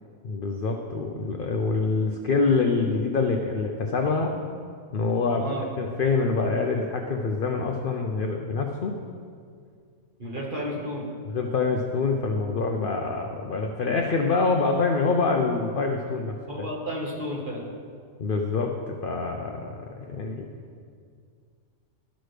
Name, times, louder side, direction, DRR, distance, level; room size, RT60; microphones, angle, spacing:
voice 1, 0.2-4.4 4.9-5.5 5.8-9.0 11.3-16.7 18.2-20.5, left 4 dB, 60° left, 3 dB, 0.6 m, -26 dB
voice 2, 5.3-5.8 10.2-11.0 16.5-17.6, equal, 40° right, -3 dB, 1.5 m, -32 dB
12.5 x 6.1 x 3.3 m, 2.2 s
omnidirectional pair, 1.5 m